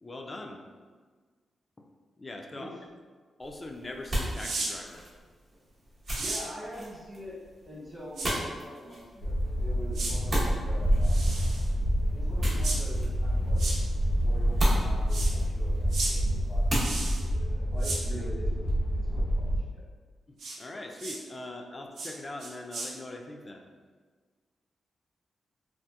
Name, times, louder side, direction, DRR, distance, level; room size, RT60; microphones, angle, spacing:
voice 1, 0.0-0.6 2.2-2.7 3.4-5.0 20.3-23.6, left 2 dB, 25° left, 3 dB, 0.3 m, -41 dB
sound 1, 3.4-17.2, equal, 40° right, 0.8 m, -36 dB
sound 2, 4.3-4.7 6.1-6.4 8.2-8.3 9.9-10.1 11.0-11.7 12.6-12.8 13.6-13.8 15.1-15.3 15.9-16.1 16.8-17.2 17.8-18.0 20.4-20.6 21.0-21.2 22.0-22.1 22.4-22.9, right 3 dB, 80° right, 0.5 m, -34 dB
voice 2, 6.2-7.4 7.6-11.5 12.1-13.7 14.0-19.9, equal, 15° right, -10 dB, 1.0 m, -44 dB
sound 3, 9.2-19.6, equal, 70° left, 0.5 m, -27 dB
2.7 x 2.4 x 2.3 m, 1.5 s
cardioid pair, 95°, 0 cm